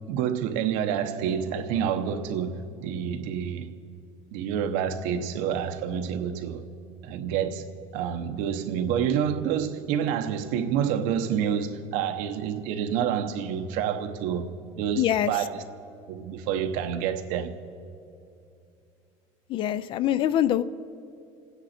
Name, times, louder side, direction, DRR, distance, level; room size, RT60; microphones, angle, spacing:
voice 1, 0.1-3.7 4.3-6.6 7.0-7.7 7.9-15.6 16.1-17.6, right 8 dB, 80° right, 0.9 m, -28 dB
voice 2, 15.0-15.3 19.5-20.6, left 11 dB, 40° left, 0.4 m, -24 dB
28.0 x 9.6 x 4.3 m
cardioid pair, 160°, 13 cm